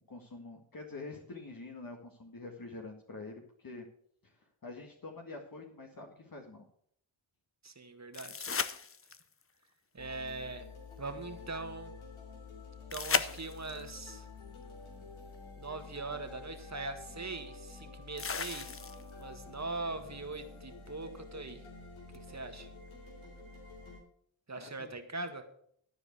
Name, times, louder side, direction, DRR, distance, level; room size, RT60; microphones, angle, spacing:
voice 1, 0.0-3.8 4.2-6.7 24.6-24.9, left 3 dB, 45° left, 1 dB, 1.8 m, -46 dB
voice 2, 7.6-8.4 9.9-10.7 11.0-12.0 12.9-14.3 15.6-18.8 19.2-21.6 22.3-22.7 24.5-25.5, right 3 dB, 35° right, 7 dB, 1.8 m, -41 dB
sound 1, 8.1-9.4 12.9-13.9 15.8-15.9 18.2-19.2 22.1-22.2, left 5 dB, 30° left, 0.7 m, -35 dB
sound 2, 10.0-24.0, left 4 dB, 85° left, 3.8 m, -49 dB
13.0 x 4.7 x 8.3 m, 0.66 s
cardioid pair, 65°, 48 cm